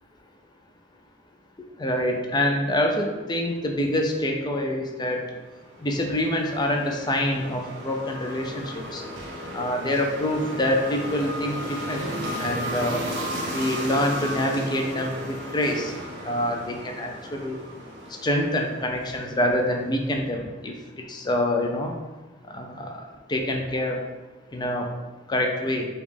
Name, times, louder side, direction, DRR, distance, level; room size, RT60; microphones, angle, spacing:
voice 1, 1.8-5.2 5.8-9.0 9.5-13.0 13.5-15.9 16.3-17.6 18.2-20.7 21.1-21.9 22.5-22.9 23.3-24.0 24.5-24.9 25.3-25.9, left 1 dB, 25° left, 2 dB, 0.5 m, -26 dB
sound 1, 5.3-19.7, equal, 65° right, 1.2 m, -35 dB
5.1 x 2.5 x 3.3 m, 1.2 s
head